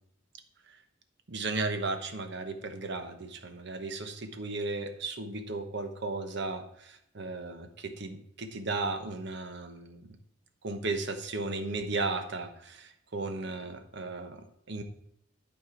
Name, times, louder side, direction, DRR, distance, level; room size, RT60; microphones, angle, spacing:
voice 1, 1.3-10.0 10.6-14.8, right 3 dB, 65° right, 7 dB, 1.1 m, -35 dB
12.0 x 4.6 x 4.5 m, 0.76 s
head